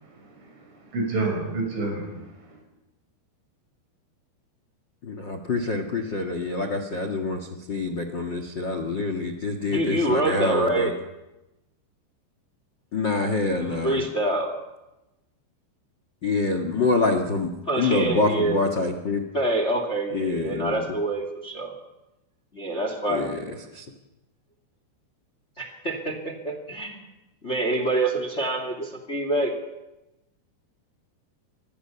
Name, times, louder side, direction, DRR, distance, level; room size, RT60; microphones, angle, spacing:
voice 1, 0.1-2.1, right 3 dB, 90° right, 3 dB, 8.8 m, -29 dB
voice 2, 5.0-10.9 12.9-14.0 16.2-17.5 17.8-19.2 20.1-20.8 23.1-23.4 23.7-23.8, left 3 dB, 75° left, 7 dB, 1.0 m, -26 dB
voice 3, 9.7-10.9 13.6-14.5 17.7-18.6 19.3-21.7 22.5-23.3 25.6-27.0 27.4-29.5, right 1 dB, 20° left, 6 dB, 1.9 m, -26 dB
25.5 x 20.5 x 7.0 m, 0.98 s
omnidirectional pair, 5.3 m